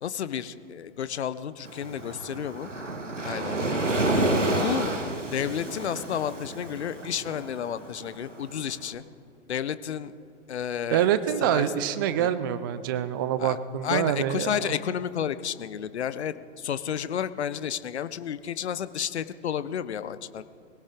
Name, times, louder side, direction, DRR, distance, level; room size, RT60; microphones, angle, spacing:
voice 1, 0.0-2.7 3.2-3.5 4.4-4.9 5.3-9.0 9.5-10.1 10.5-11.1 11.4-11.7 12.2-12.3 13.4-13.6 13.8-20.4, left 9 dB, 65° left, 15 dB, 0.8 m, -31 dB
Waves surf, 1.7-8.8, right 2 dB, 85° right, 1.6 m, -30 dB
voice 2, 10.9-14.7, right 10 dB, 20° right, 14 dB, 0.3 m, -26 dB
23.0 x 17.0 x 3.6 m, 2.5 s
figure-of-eight pair, 105°, 36 cm